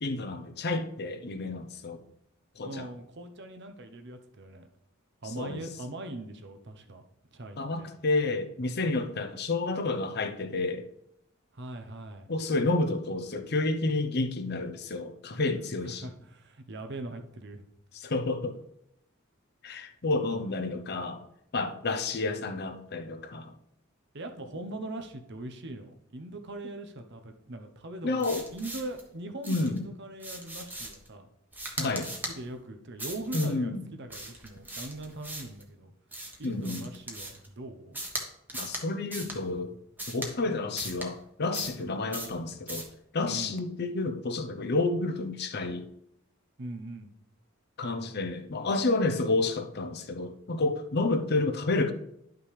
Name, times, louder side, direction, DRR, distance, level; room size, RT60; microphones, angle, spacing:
voice 1, 0.0-2.0 2.6-2.9 5.4-5.6 7.6-10.9 12.3-16.1 17.9-18.6 19.6-21.2 21.5-23.5 28.0-28.4 29.5-29.8 31.8-32.1 33.3-33.8 36.4-36.8 38.5-39.7 40.1-42.9 43.1-45.8 47.8-51.9, left 3 dB, 50° left, 7 dB, 0.7 m, -30 dB
voice 2, 2.6-4.7 5.2-7.0 7.3-7.9 11.5-12.3 15.9-17.6 24.1-31.3 31.9-32.0 32.3-35.9 36.4-38.0 43.3-43.6 46.6-47.1, right 2 dB, 55° right, 6 dB, 0.9 m, -41 dB
sound 1, 28.2-29.0 29.4-29.8 30.2-31.1 31.5-32.4 33.0-33.5 34.1-35.6 36.1-37.5 37.9-38.2 38.5-38.8 39.1-39.4 40.0-40.3 40.8-41.1 41.5-41.8 42.1-42.4 42.7-42.9, right 1 dB, 10° right, 1.2 m, -39 dB
11.0 x 5.8 x 3.4 m, 0.78 s
head